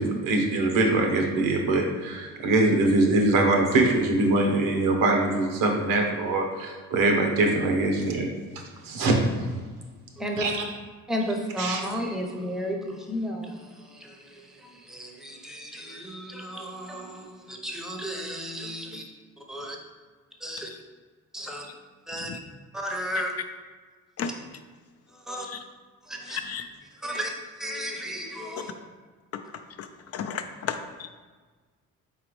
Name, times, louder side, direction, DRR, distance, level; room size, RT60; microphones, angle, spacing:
voice 1, 0.0-8.3 8.8-9.2 10.4-10.5 11.6-11.8, right 2 dB, 80° right, 0.9 m, -23 dB
voice 2, 10.2-10.5 11.1-19.0 19.5-19.8 20.4-20.7 21.3-21.6 22.1-22.3 22.7-23.3 25.1-25.5 26.0-26.4 27.0-28.7, equal, ahead, 0.7 m, -33 dB
voice 3, 25.3-25.6 26.3-26.7 29.3-30.8, left 7 dB, 50° left, 0.4 m, -35 dB
4.2 x 4.0 x 3.1 m
cardioid pair, 85°, 32 cm